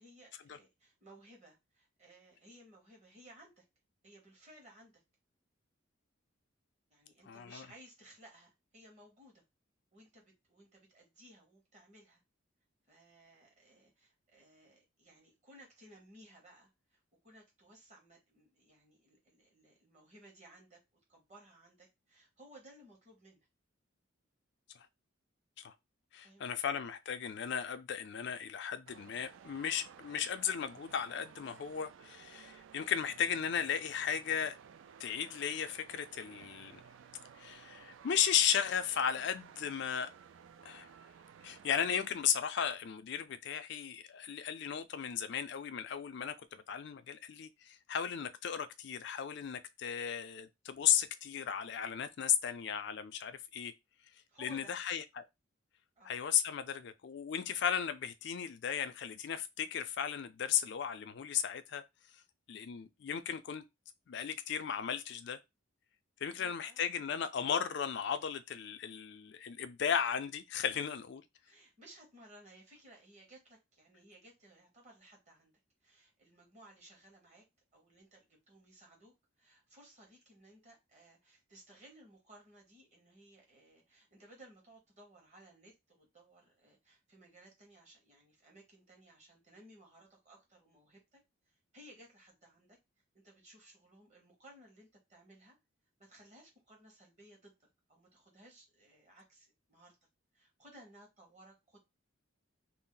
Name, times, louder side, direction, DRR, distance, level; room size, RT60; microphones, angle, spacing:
voice 1, 0.0-3.6 4.0-5.0 6.9-9.4 9.9-12.2 12.9-23.5 26.2-26.6 54.3-54.7 56.0-56.1 66.3-66.8 71.4-75.5 75.8-77.4 77.7-92.8 93.1-95.6 96.0-100.0 100.3-101.8, right 1 dB, 35° right, 1.1 m, -59 dB
voice 2, 7.3-7.7 24.7-24.9 25.6-25.7 26.1-34.6 35.0-36.8 37.4-40.1 40.6-40.9 41.4-53.7 54.4-55.2 56.0-61.8 62.5-63.6 64.1-65.4 66.2-71.2, left 8 dB, 55° left, 0.4 m, -35 dB
sound 1, 28.9-42.2, right 7 dB, 70° right, 0.3 m, -56 dB
2.6 x 2.0 x 3.7 m
head